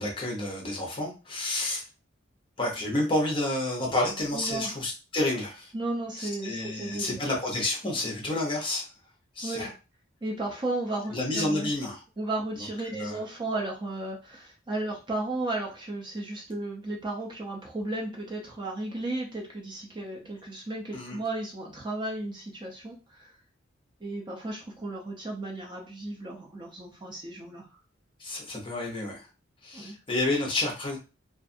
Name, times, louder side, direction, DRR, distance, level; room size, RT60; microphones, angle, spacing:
voice 1, 0.0-1.8 2.6-5.7 6.2-8.9 9.4-9.7 11.1-12.0 12.8-13.2 20.9-21.2 28.2-29.3 29.6-31.0, left 2 dB, 25° left, 0 dB, 0.7 m, -30 dB
voice 2, 4.3-4.7 5.7-7.2 9.4-9.7 10.2-11.7 12.2-23.3 24.0-27.6 29.7-30.0, right 2 dB, 25° right, -1 dB, 0.5 m, -34 dB
2.4 x 2.4 x 2.6 m, 0.31 s
head